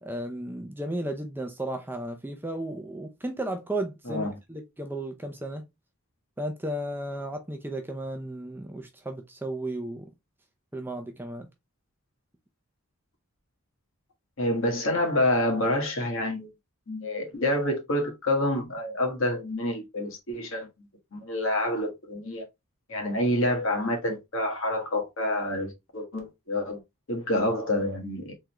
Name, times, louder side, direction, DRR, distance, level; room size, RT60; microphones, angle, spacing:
voice 1, 0.0-5.6 6.4-10.1 10.7-11.5, right 1 dB, 10° right, 0.4 m, -34 dB
voice 2, 14.4-16.5 16.9-20.7 21.1-22.5 22.9-26.8 27.1-28.3, left 1 dB, 65° left, 1.4 m, -27 dB
3.6 x 3.3 x 2.9 m
head